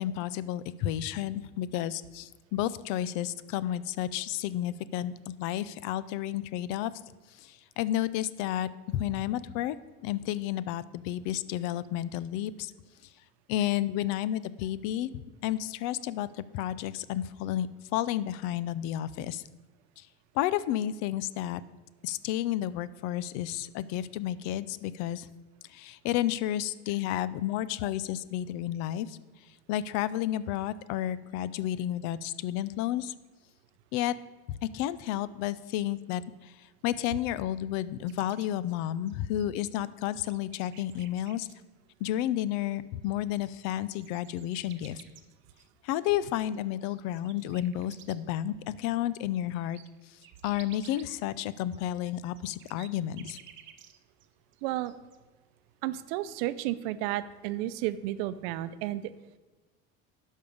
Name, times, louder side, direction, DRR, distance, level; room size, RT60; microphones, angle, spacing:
voice 1, 0.0-6.9 7.4-9.8 10.0-12.7 13.5-15.1 15.4-16.3 16.5-19.4 20.0-20.1 20.3-21.6 22.0-25.3 25.7-29.2 29.7-33.1 33.9-34.2 34.5-36.5 36.8-41.5 42.0-45.0 45.8-49.8 50.4-53.4, left 12 dB, 70° left, 17 dB, 0.5 m, -31 dB
sound 1, 38.1-39.7 40.1-41.6 42.7-42.8 43.0-48.4 48.8-48.9 49.2-54.3 54.5-55.2, right 10 dB, 40° right, 0.7 m, -54 dB
voice 2, 54.6-54.9 55.8-59.1, right 14 dB, 90° right, 14 dB, 0.6 m, -32 dB
11.5 x 5.5 x 5.3 m, 1.2 s
cardioid pair, 150°, 29 cm